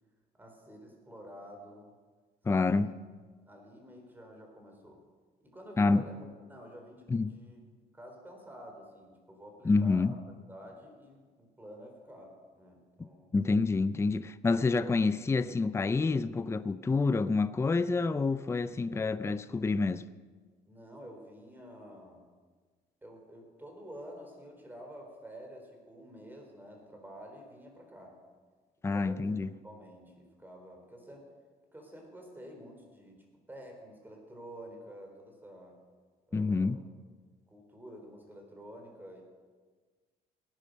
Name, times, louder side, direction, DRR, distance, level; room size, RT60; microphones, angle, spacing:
voice 1, 0.4-1.9 2.5-2.9 3.4-5.0 5.4-7.6 7.9-10.1 10.5-13.3 18.0-18.2 20.6-22.2 23.0-28.2 28.9-29.4 29.6-31.3 31.7-35.8 36.3-36.8 37.5-39.2, equal, 10° right, 4.1 m, -50 dB
voice 2, 2.5-2.9 5.8-6.0 7.1-7.3 9.6-10.1 13.3-20.0 28.8-29.5 36.3-36.8, left 3 dB, 15° left, 0.5 m, -28 dB
17.5 x 10.5 x 6.5 m
cardioid pair, 110°, 17 cm